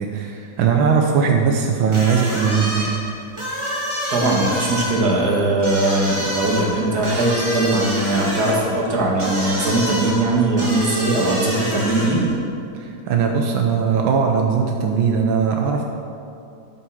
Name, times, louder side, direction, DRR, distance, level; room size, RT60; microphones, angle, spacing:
voice 1, 0.0-3.0 12.7-15.8, right 6 dB, 85° right, 2 dB, 1.6 m, -19 dB
sound 1, 1.9-12.4, equal, 15° right, 2.1 m, -28 dB
voice 2, 4.1-12.2, right 2 dB, 50° right, -2 dB, 2.4 m, -20 dB
12.5 x 8.0 x 6.3 m, 2.6 s
omnidirectional pair, 2.2 m